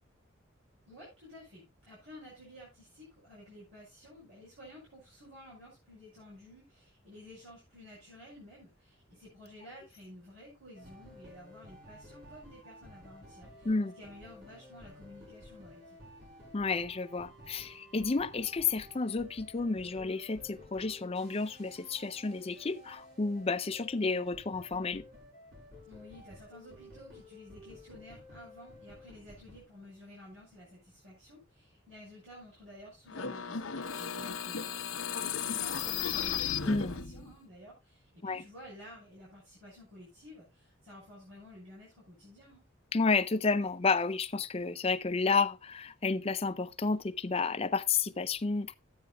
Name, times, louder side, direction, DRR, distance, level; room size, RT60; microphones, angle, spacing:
voice 1, 0.9-16.0 25.9-42.7, left 1 dB, 75° right, 5.8 m, -52 dB
sound 1, 10.7-29.7, left 1 dB, 50° right, 4.4 m, -53 dB
voice 2, 16.5-25.0 36.7-36.9 38.2-38.4 42.9-48.7, left 4 dB, 30° left, 0.5 m, -31 dB
sound 2, 33.1-37.3, left 7 dB, 75° left, 0.9 m, -35 dB
14.0 x 9.2 x 2.3 m
head